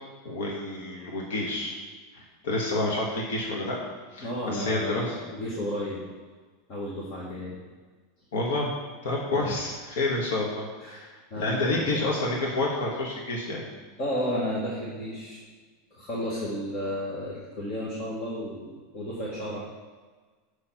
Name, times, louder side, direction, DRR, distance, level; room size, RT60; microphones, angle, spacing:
voice 1, 0.2-1.8 2.1-3.8 4.1-5.2 8.3-8.7 9.0-13.6, left 2 dB, 85° left, -2 dB, 1.3 m, -29 dB
voice 2, 4.2-6.0 6.7-7.6 9.3-9.6 10.8-11.0 11.3-12.0 14.0-15.4 15.9-19.6, equal, 40° left, -6 dB, 1.6 m, -32 dB
6.5 x 4.4 x 5.8 m, 1.4 s
supercardioid pair, 155°, 0 cm